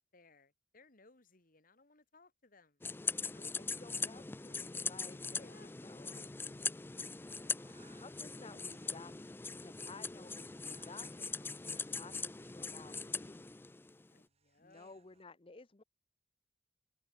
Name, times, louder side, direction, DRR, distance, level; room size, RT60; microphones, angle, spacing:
voice 1, 0.0-3.5 5.4-5.8 6.1-6.9 8.4-8.9 9.3-9.4 14.1-14.9, left 3 dB, 45° left, 2.4 m, -65 dB
sound 1, 2.8-14.1, left 4 dB, 10° left, 0.4 m, -41 dB
voice 2, 3.2-6.4 7.7-9.4 9.6-13.5 14.6-15.8, left 3 dB, 30° left, 0.7 m, -55 dB
sound 2, 7.2-15.2, right 4 dB, 35° right, 1.6 m, -69 dB
head